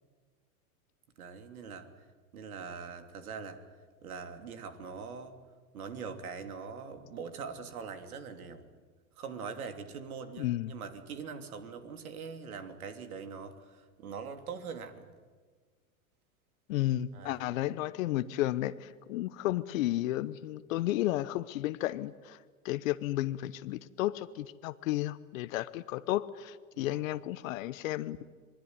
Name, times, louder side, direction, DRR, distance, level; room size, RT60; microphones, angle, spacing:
voice 1, 1.2-1.9 2.3-3.6 4.0-5.4 5.7-8.7 9.1-15.1 17.1-17.5 26.7-27.1, right 5 dB, 80° right, 8 dB, 3.1 m, -42 dB
voice 2, 10.4-10.7 16.7-22.4 22.6-28.2, left 15 dB, 65° left, 13 dB, 1.0 m, -33 dB
27.0 x 21.0 x 9.7 m, 1.5 s
hypercardioid pair, 105°, 43 cm